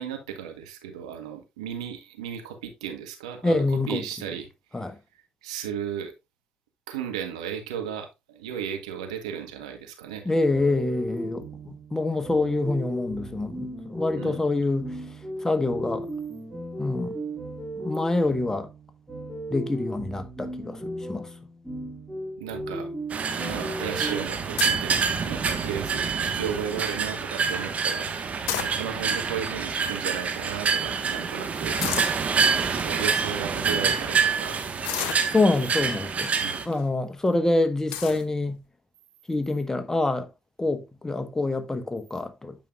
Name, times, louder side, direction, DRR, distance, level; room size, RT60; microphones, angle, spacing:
voice 1, 0.0-4.8 5.4-6.1 6.9-10.3 14.2-14.4 22.4-22.9 23.4-28.1 28.6-31.8 32.8-34.7 36.4-36.6, right 8 dB, 85° right, 1.2 m, -35 dB
voice 2, 3.4-4.0 4.7-5.0 10.2-15.0 15.4-16.1 16.8-17.2 17.8-18.7 19.5-21.3 35.3-36.3 36.7-38.6 39.3-40.3 40.6-42.6, left 2 dB, 15° left, 1.2 m, -26 dB
sound 1, 10.5-24.2, right 1 dB, 5° right, 2.2 m, -36 dB
sound 2, 23.1-36.6, right 5 dB, 45° right, 1.3 m, -27 dB
sound 3, 24.6-24.9 25.5-25.9 26.3-26.4 26.6-27.0 28.3-29.2 29.9-30.0 30.2-30.4 31.8-32.2 32.9-33.0 33.6-33.8 34.8-35.7 36.5-36.8 37.3-37.4 37.9-38.2, left 11 dB, 75° left, 0.7 m, -32 dB
9.1 x 5.4 x 2.4 m
hypercardioid pair, 50°, 3 cm